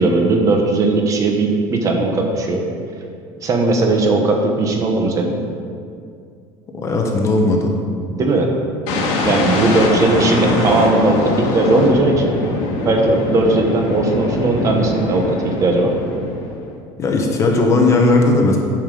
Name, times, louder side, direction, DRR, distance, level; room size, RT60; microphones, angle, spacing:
voice 1, 0.0-2.6 3.4-5.3 8.1-8.5 9.2-12.3 12.8-15.9, right 2 dB, 30° right, 2 dB, 1.1 m, -17 dB
voice 2, 6.7-7.7 17.0-18.6, left 2 dB, 25° left, 1 dB, 1.1 m, -16 dB
sound 1, 8.9-16.7, left 2 dB, 65° left, 1.8 m, -22 dB
9.1 x 5.5 x 6.9 m, 2.3 s
cardioid pair, 160°, 11 cm